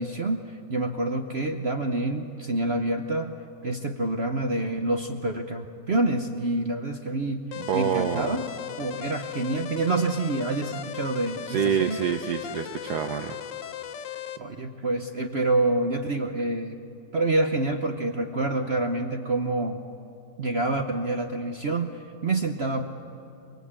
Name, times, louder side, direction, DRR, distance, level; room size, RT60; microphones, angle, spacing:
voice 1, 0.0-3.3 3.6-7.4 7.7-8.5 8.8-12.0 14.4-16.8 17.1-19.8 20.4-22.9, right 2 dB, 45° right, 5 dB, 1.0 m, -27 dB
sound 1, 7.5-14.4, left 10 dB, 75° left, 1.5 m, -37 dB
voice 2, 7.6-8.4 11.5-13.4, right 8 dB, 65° right, 6 dB, 1.2 m, -27 dB
23.0 x 23.0 x 8.7 m, 2.7 s
omnidirectional pair, 2.0 m